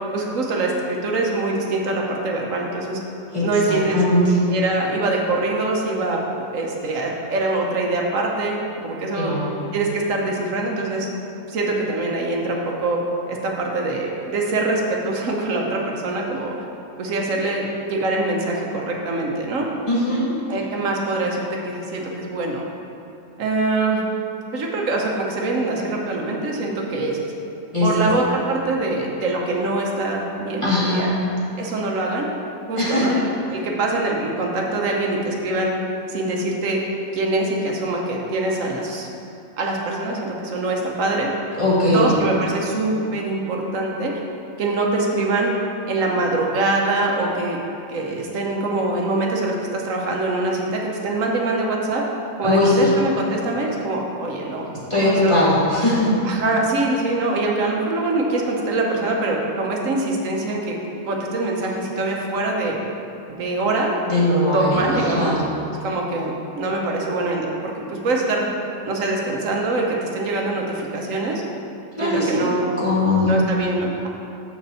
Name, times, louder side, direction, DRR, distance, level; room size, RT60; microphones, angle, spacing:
voice 1, 0.1-3.0 3.4-4.0 4.5-9.3 9.7-11.1 11.5-13.0 13.3-16.5 17.0-19.7 20.5-22.6 23.4-24.0 24.5-27.2 27.8-31.1 31.6-32.3 32.7-35.7 36.1-36.8 37.1-39.1 39.6-41.3 41.9-44.2 44.6-45.5 45.9-47.6 47.9-52.0 52.4-54.7 54.9-55.4 56.2-60.8 61.0-62.8 63.3-63.9 64.2-65.3 65.8-68.5 68.8-71.4 72.0-72.7 73.2-74.1, right 2 dB, 85° right, -1 dB, 1.4 m, -24 dB
voice 2, 3.3-4.3 9.1-9.5 19.9-20.3 27.7-28.1 30.6-31.1 32.8-33.1 41.6-42.2 52.4-52.9 54.9-56.1 64.1-65.4 72.0-72.5 72.8-73.4, left 1 dB, 25° left, -7 dB, 1.3 m, -20 dB
6.7 x 5.4 x 7.0 m, 2.7 s
omnidirectional pair, 1.3 m